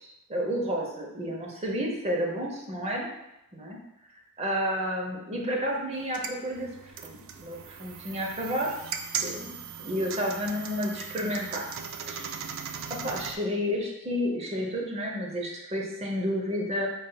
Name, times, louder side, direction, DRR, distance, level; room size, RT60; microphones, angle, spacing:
voice 1, 0.3-3.1 3.5-3.8 4.4-8.7 9.2-9.5 9.8-11.7 12.1-12.3 12.9-16.9, equal, 30° right, 0 dB, 0.7 m, -31 dB
sound 1, 5.9-13.3, right 7 dB, 60° right, 0.3 m, -38 dB
5.3 x 3.6 x 2.2 m, 0.91 s
head